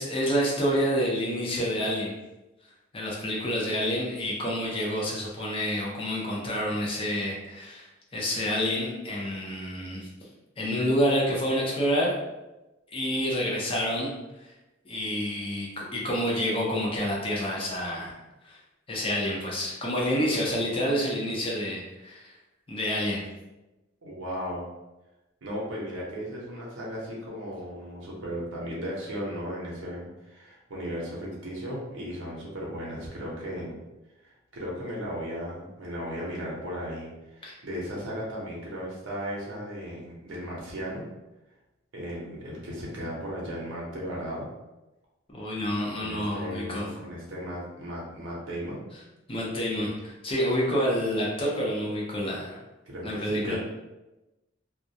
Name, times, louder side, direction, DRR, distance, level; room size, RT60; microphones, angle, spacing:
voice 1, 0.0-2.1 2.9-10.1 10.6-12.1 12.9-14.1 14.4-14.5 14.9-18.1 18.4-18.6 18.9-22.3 22.7-23.2 37.4-37.5 45.3-46.9 49.3-52.6 53.0-53.6, equal, 30° left, -4 dB, 0.6 m, -28 dB
voice 2, 24.0-24.7 25.4-33.8 34.2-41.0 41.9-44.5 46.0-48.8 52.9-53.6, equal, 70° right, -5 dB, 0.7 m, -36 dB
2.2 x 2.1 x 2.7 m, 1.0 s
head